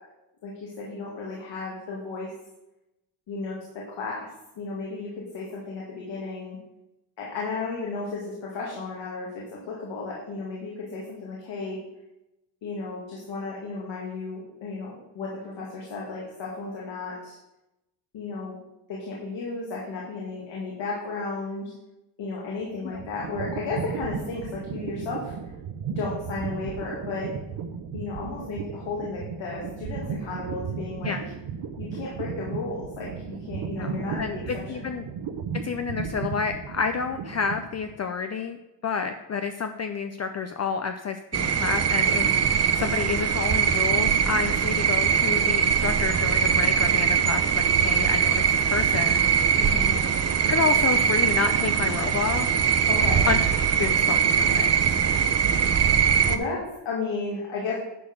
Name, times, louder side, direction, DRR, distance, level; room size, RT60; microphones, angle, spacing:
voice 1, 0.4-2.3 3.3-4.3 4.6-6.6 7.2-11.8 12.6-17.4 18.1-18.6 18.9-21.7 22.2-25.3 26.0-27.3 27.9-31.2 31.8-34.4 34.8-34.9 49.6-50.1 52.9-53.3 56.3-57.7, left 3 dB, 80° left, -4 dB, 2.3 m, -34 dB
sound 1, 22.6-38.0, right 6 dB, 85° right, 1.0 m, -35 dB
voice 2, 33.8-35.0 35.6-38.6 38.8-49.2 50.5-52.5 53.3-53.5 53.8-54.7, left 5 dB, 35° left, 7 dB, 0.5 m, -29 dB
sound 2, 41.3-56.4, right 7 dB, 35° right, 0.6 m, -22 dB
10.5 x 4.3 x 6.6 m, 0.92 s
cardioid pair, 130°, 44 cm